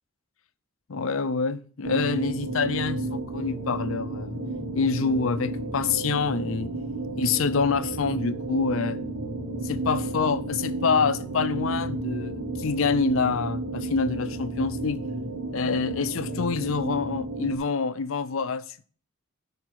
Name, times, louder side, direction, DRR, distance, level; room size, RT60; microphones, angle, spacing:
voice 1, 0.9-4.4 4.8-6.7 7.2-9.0 9.6-15.0 15.5-18.6, left 5 dB, 65° left, 0.5 m, -26 dB
sound 1, 1.8-17.6, right 2 dB, 55° right, 2.7 m, -32 dB
11.5 x 4.9 x 4.6 m
head